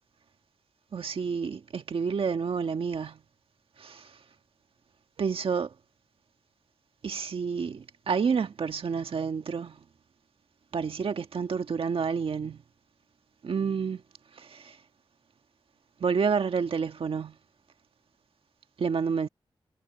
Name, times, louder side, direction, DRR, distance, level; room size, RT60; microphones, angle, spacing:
voice 1, 0.9-3.2 3.8-4.0 5.2-5.7 7.0-9.8 10.7-12.6 13.4-14.0 14.4-14.6 16.0-17.3 18.8-19.3, right 6 dB, 80° right, 1.6 m, -29 dB
wide cardioid pair, 150°, 9 cm